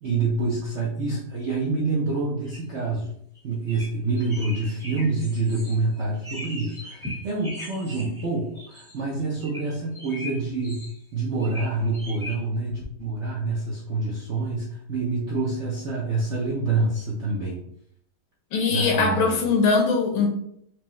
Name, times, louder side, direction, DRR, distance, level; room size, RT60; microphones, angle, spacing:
voice 1, 0.0-3.1 3.4-10.8 11.1-17.6 18.7-19.4, right 3 dB, 75° right, -4 dB, 0.6 m, -27 dB
sound 1, 2.4-2.6 3.3-3.4 3.7-3.9 4.2-8.3 8.5-9.0 9.4-11.0 11.4-12.3, left 1 dB, ahead, 1.0 m, -39 dB
voice 2, 18.5-20.3, left 4 dB, 90° left, 2 dB, 1.7 m, -21 dB
4.7 x 2.3 x 3.0 m, 0.69 s
omnidirectional pair, 2.2 m